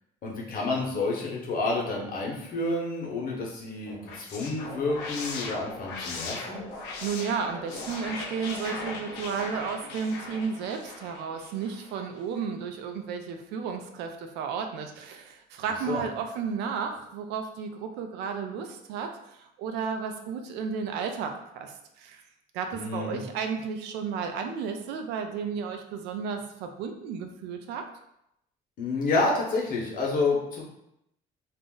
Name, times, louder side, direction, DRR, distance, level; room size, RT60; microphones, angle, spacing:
voice 1, 0.2-6.6 15.9-16.0 22.7-23.2 28.8-30.6, left 3 dB, 55° left, -2 dB, 0.9 m, -29 dB
sound 1, 3.9-11.9, left 3 dB, 85° left, 0.5 m, -38 dB
voice 2, 7.0-22.2 22.5-27.8, right 6 dB, 90° right, 5 dB, 0.4 m, -33 dB
2.5 x 2.0 x 3.7 m, 0.80 s
cardioid pair, 110°, 17 cm